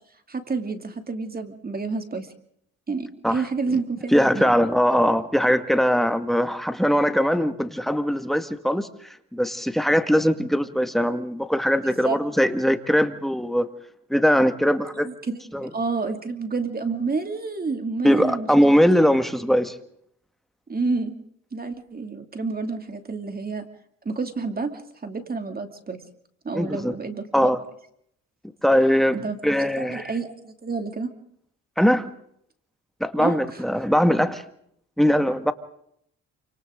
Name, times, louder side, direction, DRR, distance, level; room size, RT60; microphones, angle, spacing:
voice 1, 0.3-2.3 2.9-4.5 11.8-12.2 15.0-18.5 20.7-21.1 21.5-23.7 24.0-26.0 26.4-27.5 29.1-29.4 29.8-31.1 33.2-33.6, right 4 dB, 30° right, 6 dB, 2.7 m, -29 dB
voice 2, 4.1-8.9 9.3-13.7 14.1-15.1 15.5-15.7 18.0-19.7 26.5-27.0 27.3-27.6 28.6-29.2 29.4-30.0 31.8-32.1 33.0-34.4 35.0-35.5, equal, ahead, 8 dB, 1.9 m, -21 dB
28.5 x 26.5 x 3.9 m, 0.70 s
cardioid pair, 90°, 30 cm